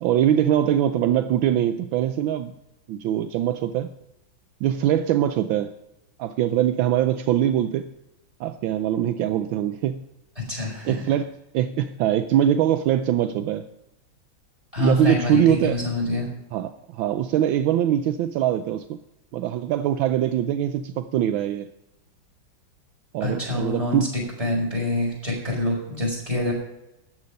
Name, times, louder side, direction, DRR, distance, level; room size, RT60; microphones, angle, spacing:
voice 1, 0.0-2.5 2.9-3.9 4.6-5.7 6.2-7.9 8.4-10.0 10.8-13.7 14.8-15.8 16.5-19.0 19.3-21.7 23.1-24.1, right 11 dB, 80° right, 10 dB, 1.4 m, -23 dB
voice 2, 10.5-11.0 14.7-16.3 23.2-24.1 24.4-26.5, left 2 dB, 15° right, -2 dB, 5.4 m, -26 dB
13.5 x 9.8 x 5.2 m, 0.91 s
omnidirectional pair, 2.2 m